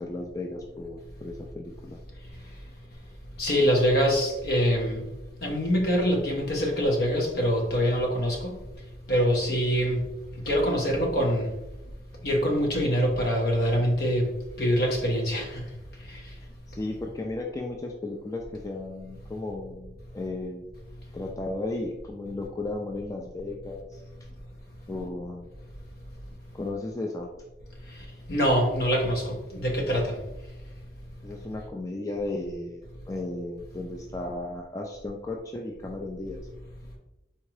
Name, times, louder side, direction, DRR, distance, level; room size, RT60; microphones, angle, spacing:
voice 1, 0.0-2.0 16.7-20.7 21.1-24.0 24.9-25.5 26.5-27.3 31.2-36.4, left 2 dB, 20° left, 1 dB, 0.3 m, -35 dB
voice 2, 3.4-5.0 5.4-8.5 9.1-10.1 10.5-11.5 12.2-14.3 14.6-15.6 28.3-30.2, equal, 60° left, 0 dB, 1.0 m, -24 dB
4.3 x 3.6 x 3.2 m, 0.98 s
head